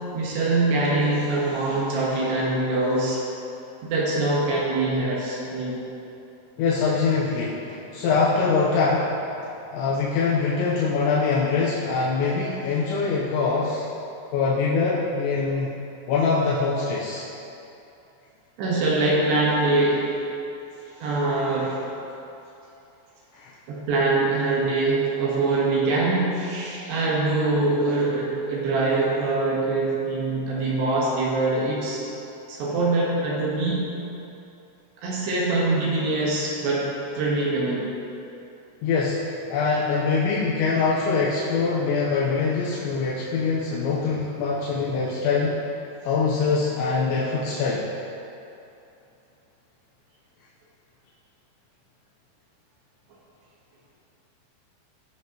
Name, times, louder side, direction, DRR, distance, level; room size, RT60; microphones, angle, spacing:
voice 1, 0.1-3.2 3.9-5.8 14.2-14.3 18.6-20.2 20.9-21.8 23.7-32.0 32.5-33.9 35.0-37.9, right 2 dB, 70° right, -5 dB, 3.3 m, -23 dB
voice 2, 6.6-9.2 9.7-13.9 14.3-15.7 16.1-17.3 23.3-23.5 38.8-45.7 46.0-47.9, left 4 dB, 85° left, -6 dB, 3.1 m, -23 dB
16.5 x 6.2 x 2.9 m, 2.8 s
omnidirectional pair, 5.2 m